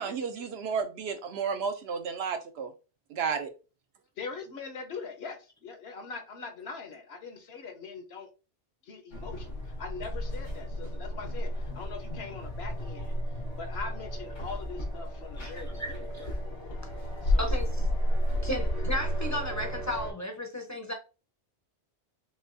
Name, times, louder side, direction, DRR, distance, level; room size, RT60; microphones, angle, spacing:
voice 1, 0.0-2.7 3.1-3.5, right 6 dB, 65° right, 0.8 m, -32 dB
voice 2, 4.2-8.3 8.8-13.2 13.6-16.1 17.2-17.6, left 4 dB, 65° left, 1.0 m, -42 dB
sound 1, 9.1-20.1, equal, 90° left, 1.7 m, -32 dB
voice 3, 15.4-16.3 17.4-17.9 18.4-20.9, left 1 dB, 20° left, 0.6 m, -35 dB
6.1 x 2.3 x 2.6 m
omnidirectional pair, 1.2 m